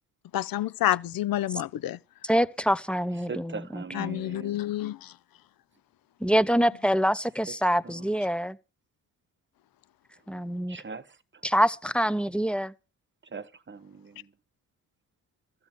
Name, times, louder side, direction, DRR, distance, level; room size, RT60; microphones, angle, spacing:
voice 1, 0.3-2.0 3.9-5.1, left 14 dB, 70° left, 0.7 m, -29 dB
voice 2, 2.2-4.2 6.2-8.6 10.3-10.8 11.4-12.7, equal, 5° left, 0.9 m, -25 dB
voice 3, 3.3-4.6 7.8-8.1 10.7-11.2 13.3-14.3, right 5 dB, 30° right, 1.3 m, -40 dB
13.5 x 8.7 x 6.0 m
cardioid pair, 70°, 36 cm